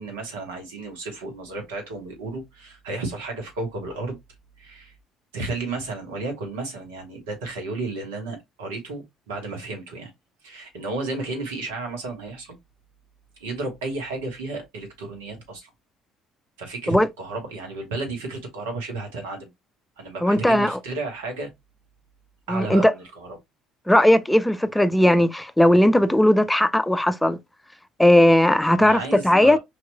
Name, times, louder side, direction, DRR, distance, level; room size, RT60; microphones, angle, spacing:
voice 1, 0.0-4.2 4.6-4.9 5.3-10.1 10.4-12.6 13.4-15.7 16.6-19.5 20.0-21.5 22.5-23.4 28.7-29.6, right 3 dB, 80° right, 1.2 m, -33 dB
voice 2, 20.2-20.8 22.5-22.9 23.9-27.4 28.0-29.6, left 1 dB, 5° left, 0.5 m, -17 dB
4.6 x 3.0 x 2.2 m
hypercardioid pair, 60°, 0 cm